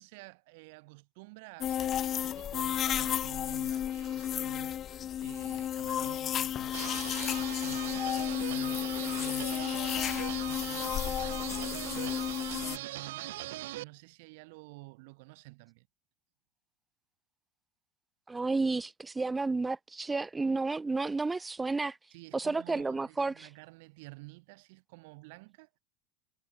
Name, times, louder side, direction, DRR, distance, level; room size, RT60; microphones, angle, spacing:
voice 1, 0.0-4.8 5.2-7.0 7.6-8.2 8.5-9.8 10.4-12.3 12.5-15.9 22.1-25.8, right 26 dB, 70° right, 2.4 m, -51 dB
sound 1, 1.6-12.8, left 10 dB, 35° left, 0.4 m, -33 dB
sound 2, 6.7-13.8, right 17 dB, 85° right, 0.6 m, -40 dB
voice 2, 18.3-22.0 22.3-23.5, right 3 dB, 10° right, 0.9 m, -31 dB
supercardioid pair, 135°, 0 cm